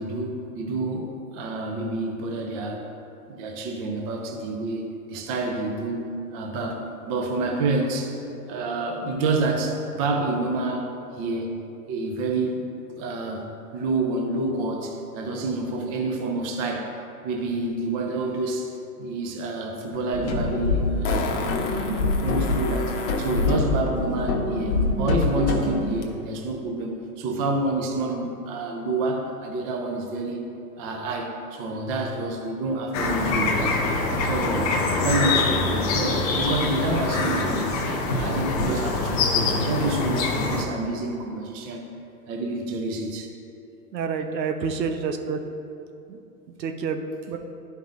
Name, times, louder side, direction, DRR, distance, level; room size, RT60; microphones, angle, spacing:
voice 1, 0.0-2.9 3.3-8.2 8.5-10.9 11.2-11.6 11.9-12.6 12.9-13.5 13.7-16.9 17.2-18.7 19.0-30.5 30.8-37.7 38.1-41.9 42.3-43.3, right 2 dB, 20° right, 2 dB, 0.5 m, -28 dB
Fart, 19.9-20.0 21.0-23.6 26.0-26.1, left 4 dB, 45° left, 1.0 m, -32 dB
sound 1, 20.1-25.8, left 3 dB, 70° left, 1.2 m, -25 dB
sound 2, 32.9-40.6, left 3 dB, 25° left, 0.5 m, -24 dB
voice 2, 43.9-45.4 46.1-46.2 46.6-47.4, right 5 dB, 80° right, 6 dB, 0.9 m, -28 dB
11.5 x 5.4 x 2.6 m, 2.7 s
hypercardioid pair, 135°, 49 cm